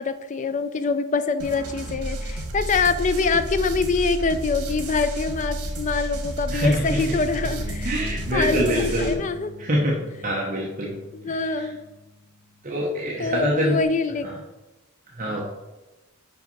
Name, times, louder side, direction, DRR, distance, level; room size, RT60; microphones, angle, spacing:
voice 1, 0.0-9.5 11.1-11.8 13.2-14.3, left 4 dB, 35° left, 11 dB, 0.4 m, -25 dB
sound 1, 1.4-9.1, right 1 dB, 80° right, 1.4 m, -31 dB
Bass guitar, 7.6-13.8, left 4 dB, 55° right, 1.3 m, -43 dB
voice 2, 7.8-9.2 9.6-10.0 10.2-10.9 12.6-13.8 15.2-15.4, equal, 35° right, -3 dB, 1.0 m, -24 dB
5.7 x 5.2 x 5.3 m, 1.1 s
head